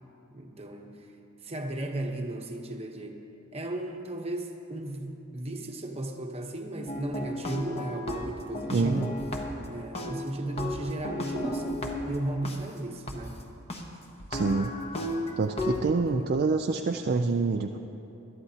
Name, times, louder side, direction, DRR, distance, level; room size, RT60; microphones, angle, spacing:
voice 1, 0.3-1.1 1.4-3.2 3.5-9.1 9.6-13.4 15.8-16.4, right 1 dB, 30° right, 3 dB, 1.0 m, -35 dB
sound 1, 6.9-9.7 9.9-12.6 13.1-13.2 13.7-13.8 14.2-15.8, left 1 dB, 30° left, 1.0 m, -34 dB
voice 2, 8.7-9.1 14.3-14.7 15.4-17.8, right 4 dB, 45° right, 4 dB, 0.4 m, -26 dB
21.0 x 12.0 x 2.8 m, 3.0 s
head